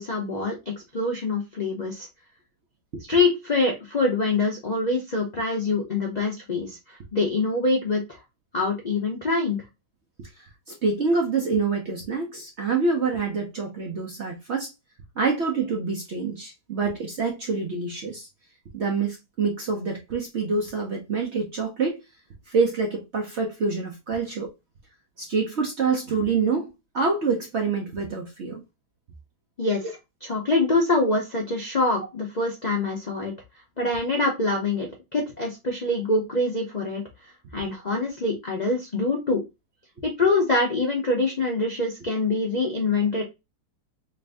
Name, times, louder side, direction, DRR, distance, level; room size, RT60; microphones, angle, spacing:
voice 1, 0.0-2.1 3.1-8.2 8.5-9.6 29.6-29.9 30.2-33.3 33.8-39.4 40.0-43.2, left 3 dB, 55° left, 0.4 m, -25 dB
voice 2, 10.7-14.7 15.2-18.3 18.7-22.0 22.5-24.5 25.2-28.6, right 4 dB, 55° right, 0.7 m, -26 dB
3.2 x 2.6 x 3.3 m
omnidirectional pair, 1.9 m